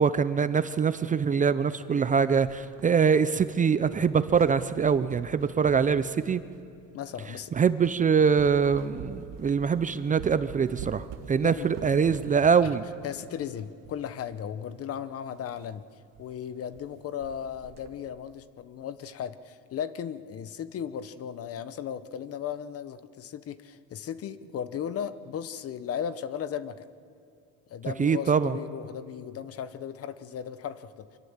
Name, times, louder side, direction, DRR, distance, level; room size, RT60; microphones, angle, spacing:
voice 1, 0.0-6.4 7.5-12.8 28.0-28.6, right 6 dB, 25° right, 13 dB, 0.6 m, -24 dB
sound 1, 2.3-3.5 3.8-6.8 7.3-7.4 7.8-8.0 8.4-14.4 14.7-14.8 15.0-15.1 15.6-15.7 16.1-16.3 16.5-16.9 17.2-18.2, right 8 dB, 70° right, 1.6 m, -46 dB
voice 2, 6.9-7.5 11.4-12.3 12.6-12.7 13.0-15.9 16.2-26.9 27.7-31.1, left 8 dB, 45° left, 14 dB, 1.0 m, -36 dB
25.0 x 22.0 x 7.4 m, 2.7 s
cardioid pair, 130°, 34 cm